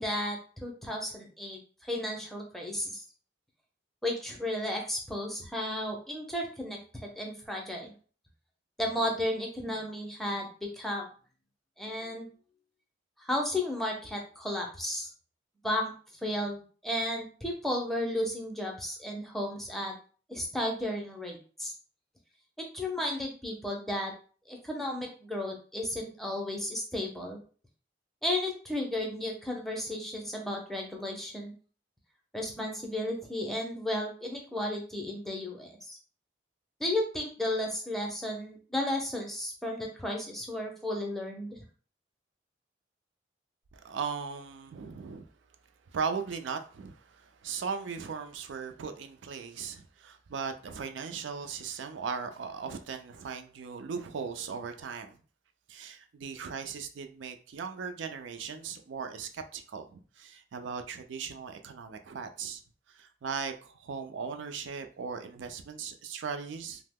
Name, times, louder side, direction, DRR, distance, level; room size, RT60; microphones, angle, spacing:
voice 1, 0.0-3.0 4.0-7.9 8.8-10.5 10.7-11.1 11.8-12.3 13.2-15.1 15.6-15.9 16.2-19.9 20.3-21.7 22.7-24.1 24.5-27.4 28.2-31.5 32.3-36.0 36.8-41.6, left 1 dB, ahead, 0.5 m, -33 dB
voice 2, 43.7-45.3 45.9-55.2 55.7-62.6 62.9-66.8, right 5 dB, 85° right, 0.4 m, -38 dB
2.7 x 2.0 x 3.5 m
head